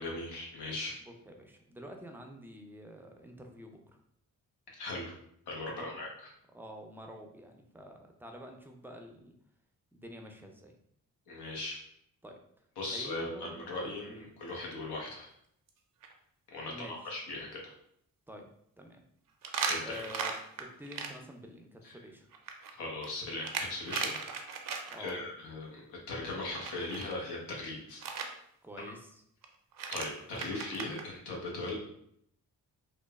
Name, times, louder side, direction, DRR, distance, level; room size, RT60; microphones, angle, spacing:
voice 1, 0.0-0.9 4.7-5.1 5.5-6.3 11.3-11.8 12.8-15.3 16.5-17.7 19.7-20.0 21.8-21.9 22.7-24.2 25.0-28.0 29.9-31.7, left 2 dB, 80° left, -1 dB, 0.8 m, -39 dB
voice 2, 1.0-4.0 5.7-6.0 6.5-9.3 9.9-10.8 12.2-12.4 12.9-13.7 14.1-14.3 16.7-17.0 18.3-18.5 18.8-19.0 19.8-22.3 24.9-25.3 28.6-29.2, equal, 5° right, 3 dB, 0.4 m, -48 dB
sound 1, 14.5-14.7 15.1-15.2 15.7-15.8 16.0-16.1 19.4-21.1 22.3-25.1 26.6-27.1 28.0-28.3 29.4-29.5 29.7-31.0, right 5 dB, 55° right, 0.5 m, -37 dB
2.9 x 2.0 x 2.3 m, 0.71 s
supercardioid pair, 50°, 39 cm